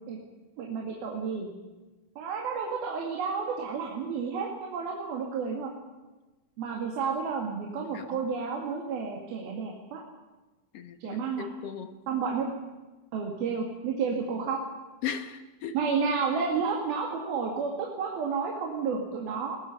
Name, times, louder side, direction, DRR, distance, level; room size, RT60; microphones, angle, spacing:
voice 1, 0.6-1.5 2.2-5.7 6.6-10.0 11.0-11.5 12.1-12.5 13.1-14.6 15.7-19.6, right 5 dB, 75° right, 0 dB, 4.2 m, -31 dB
voice 2, 10.7-11.9 15.0-15.7, left 8 dB, 70° left, 8 dB, 1.5 m, -37 dB
22.0 x 18.0 x 8.6 m, 1.2 s
omnidirectional pair, 4.4 m